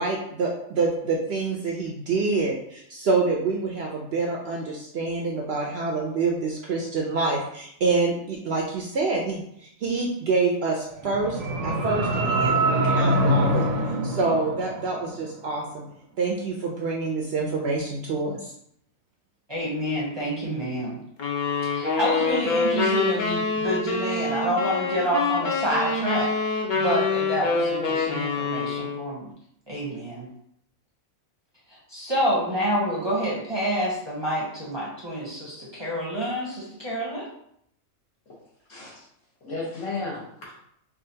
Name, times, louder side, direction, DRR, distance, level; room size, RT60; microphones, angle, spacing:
voice 1, 0.0-13.6 14.0-15.8 16.2-18.5, right 3 dB, 65° right, -1 dB, 0.7 m, -27 dB
sound 1, 10.9-15.1, right 1 dB, 85° right, 1.0 m, -24 dB
voice 2, 19.5-21.0 21.7-29.3 29.7-30.3 31.9-37.3, equal, 25° right, -6 dB, 0.7 m, -28 dB
sound 2, 21.2-29.1, left 4 dB, 50° left, 0.6 m, -26 dB
voice 3, 38.7-39.0 39.4-40.6, left 3 dB, 65° left, -4 dB, 1.5 m, -34 dB
4.9 x 2.4 x 2.7 m, 0.72 s
omnidirectional pair, 1.4 m